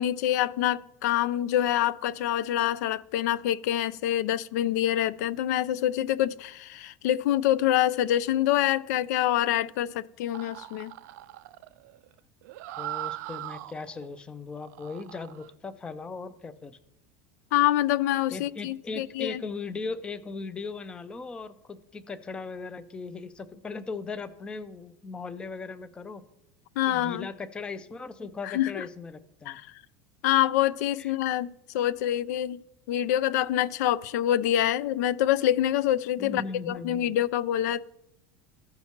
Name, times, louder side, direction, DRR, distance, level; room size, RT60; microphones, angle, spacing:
voice 1, 0.0-10.9 17.5-19.4 26.8-27.3 28.4-28.9 29.5-29.6 30.2-37.9, left 12 dB, 85° left, 0.4 m, -26 dB
sound 1, 10.3-14.1 14.5-15.5, right 16 dB, 85° right, 0.4 m, -40 dB
voice 2, 12.8-16.8 18.3-26.2 26.9-29.6 31.0-31.1 36.2-37.1, left 4 dB, 10° left, 0.4 m, -38 dB
15.0 x 5.7 x 2.9 m
supercardioid pair, 165°, 9 cm